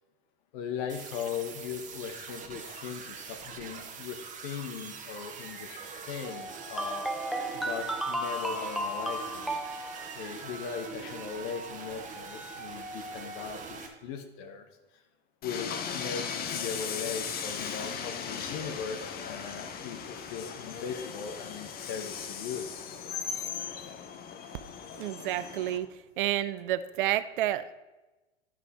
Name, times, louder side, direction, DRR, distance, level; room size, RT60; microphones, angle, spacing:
voice 1, 0.5-7.1 7.5-9.6 10.1-14.7 15.4-22.7, left 7 dB, 45° left, 7 dB, 1.3 m, -39 dB
sound 1, 0.9-13.9, right 4 dB, 25° right, 1.5 m, -42 dB
sound 2, 6.7-9.9, right 1 dB, ahead, 0.3 m, -33 dB
Train, 15.4-25.8, left 7 dB, 30° left, 1.0 m, -38 dB
voice 2, 25.0-25.9 26.2-27.7, right 13 dB, 55° right, 14 dB, 0.5 m, -30 dB
12.0 x 5.9 x 4.2 m, 1.1 s
figure-of-eight pair, 95°, 32 cm